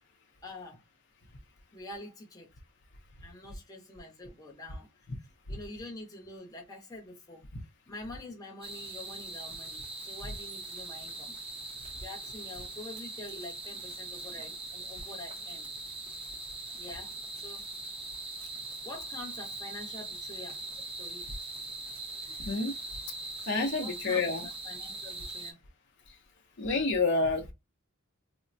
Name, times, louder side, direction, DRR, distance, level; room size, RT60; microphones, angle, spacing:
voice 1, 0.4-0.8 1.7-2.5 3.2-4.9 5.5-7.5 7.9-11.4 11.9-15.7 16.7-17.6 18.8-20.6 21.0-21.3 23.8-25.6, left 2 dB, 15° left, 0.9 m, -46 dB
sound 1, 8.6-25.5, right 2 dB, 25° right, 0.7 m, -41 dB
voice 2, 22.4-22.7 23.5-24.5 26.1-26.2 26.6-27.5, left 3 dB, 55° left, 0.7 m, -29 dB
3.5 x 2.1 x 2.6 m
head